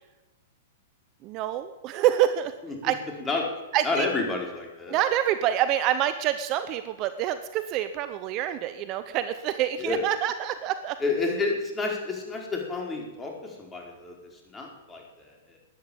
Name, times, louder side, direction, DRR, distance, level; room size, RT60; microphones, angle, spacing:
voice 1, 1.2-2.5 2.8-3.0 3.7-4.1 4.9-11.0, right 11 dB, 40° right, 11 dB, 0.9 m, -26 dB
voice 2, 3.8-5.0 9.8-10.0 11.0-14.1 14.5-15.6, left 3 dB, 15° left, 0 dB, 4.6 m, -30 dB
13.0 x 10.5 x 8.8 m, 1.1 s
figure-of-eight pair, 105°, 0 cm